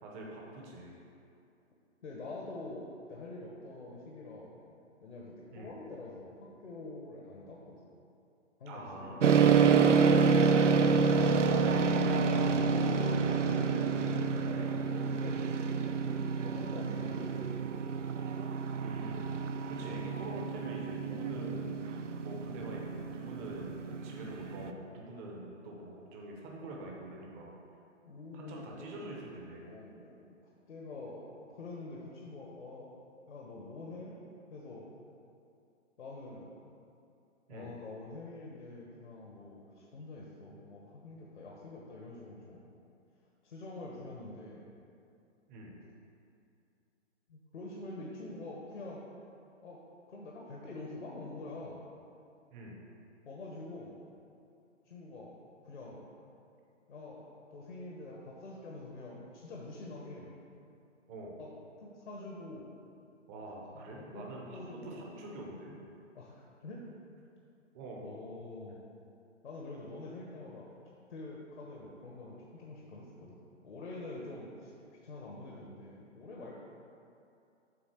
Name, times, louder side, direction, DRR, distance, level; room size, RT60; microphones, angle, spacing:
voice 1, 0.0-1.0 5.5-5.7 8.7-9.4 18.7-21.8 22.2-27.5 28.3-29.7 37.5-37.7 45.5-45.8 52.5-52.8 61.1-61.4 63.3-65.8 67.7-68.1, right 1 dB, 15° right, -2 dB, 0.6 m, -45 dB
voice 2, 2.0-4.6 5.0-7.8 8.6-9.8 12.3-17.6 19.8-20.2 28.0-29.3 29.6-30.3 30.7-32.9 33.2-34.2 34.5-34.9 36.0-36.5 37.5-42.7 43.4-44.7 47.3-49.0 49.6-49.8 50.1-51.8 53.2-54.0 54.8-55.3 55.6-56.1 56.9-57.2 57.5-60.3 61.4-61.5 61.8-62.7 63.7-65.1 66.1-66.9 68.0-68.8 69.4-70.7 71.1-76.5, left 2 dB, 70° left, -3 dB, 1.3 m, -46 dB
sound 1, 9.2-24.7, right 5 dB, 80° right, 0.6 m, -28 dB
7.6 x 3.7 x 6.4 m, 2.7 s
hypercardioid pair, 145°, 36 cm